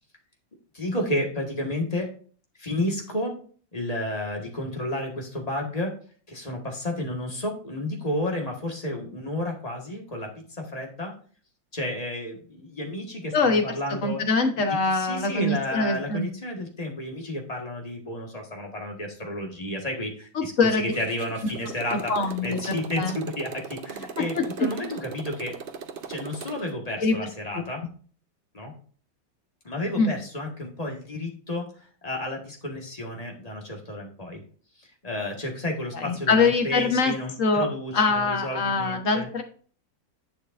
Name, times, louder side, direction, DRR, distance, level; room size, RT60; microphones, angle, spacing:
voice 1, 0.7-2.1 2.6-3.4 3.7-5.9 6.3-11.1 11.7-14.2 14.5-22.1 22.4-25.5 26.1-27.8 28.5-28.7 29.6-34.4 34.8-39.3, left 1 dB, 20° left, 1 dB, 1.6 m, -31 dB
voice 2, 13.3-13.6 14.0-16.3 20.3-20.9 21.9-22.6 23.0-23.2 24.2-24.7 27.0-27.1 30.0-30.1 36.0-37.1 37.4-37.7 37.9-39.4, left 3 dB, 50° left, 4 dB, 1.4 m, -23 dB
Motorcycle, 20.9-26.7, right 5 dB, 85° right, 0.4 m, -39 dB
10.5 x 6.4 x 2.6 m, 0.43 s
omnidirectional pair, 2.0 m